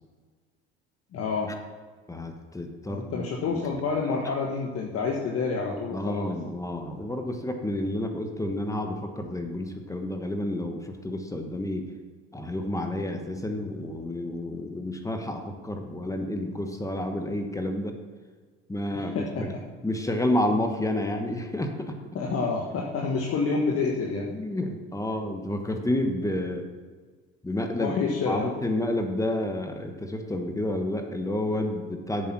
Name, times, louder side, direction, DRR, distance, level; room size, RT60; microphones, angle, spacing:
voice 1, 1.1-1.5 2.9-6.3 18.9-19.5 22.1-24.3 27.8-28.5, left 4 dB, 50° left, -1 dB, 1.4 m, -28 dB
voice 2, 2.1-3.8 5.9-11.9 12.3-17.9 18.7-19.5 19.8-22.0 24.3-26.7 27.4-27.9 28.3-32.3, left 1 dB, 10° left, 5 dB, 1.3 m, -30 dB
8.6 x 7.0 x 6.1 m, 1.5 s
hypercardioid pair, 75°, 31 cm